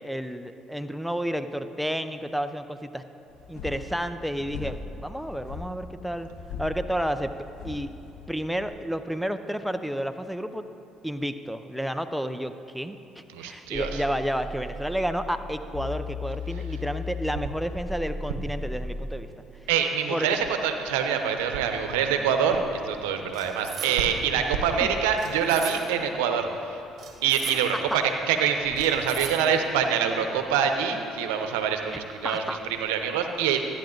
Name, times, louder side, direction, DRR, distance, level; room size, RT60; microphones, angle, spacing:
voice 1, 0.0-3.0 3.5-6.3 6.6-7.3 7.6-7.9 8.3-10.6 11.0-19.3 20.1-20.4 24.8-24.9 27.7-28.0 32.2-32.6, equal, ahead, 9 dB, 0.6 m, -31 dB
sound 1, 3.3-8.7, left 5 dB, 70° left, 1.9 m, -40 dB
voice 2, 13.3-14.0 19.7-26.8 27.2-33.6, right 7 dB, 90° right, 6 dB, 0.8 m, -25 dB
sound 2, 13.7-15.2 15.7-19.2, left 3 dB, 35° left, 1.2 m, -35 dB
sound 3, 23.3-24.3 25.2-26.2 27.0-28.0 28.8-29.7, right 7 dB, 55° right, 1.2 m, -39 dB
13.0 x 9.9 x 3.9 m, 3.0 s
supercardioid pair, 65°, 0 cm